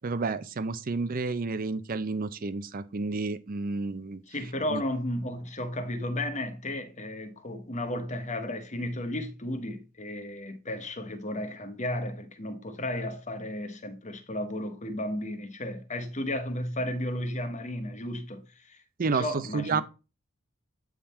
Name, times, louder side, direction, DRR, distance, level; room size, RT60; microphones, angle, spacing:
voice 1, 0.0-4.2 4.7-4.8 19.0-19.8, right 4 dB, 45° right, 0.5 m, -30 dB
voice 2, 4.3-18.8 19.1-19.8, left 1 dB, 35° left, 1.1 m, -34 dB
8.7 x 3.7 x 4.2 m
head